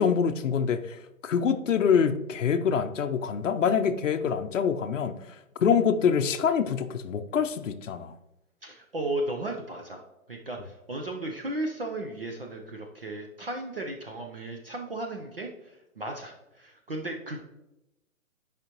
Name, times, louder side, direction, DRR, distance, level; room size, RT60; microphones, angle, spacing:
voice 1, 0.0-8.1, left 7 dB, 60° left, 7 dB, 0.6 m, -25 dB
voice 2, 8.6-10.0 10.3-17.4, right 1 dB, 40° right, 2 dB, 0.6 m, -35 dB
9.3 x 5.0 x 2.9 m, 0.91 s
hypercardioid pair, 180°, 42 cm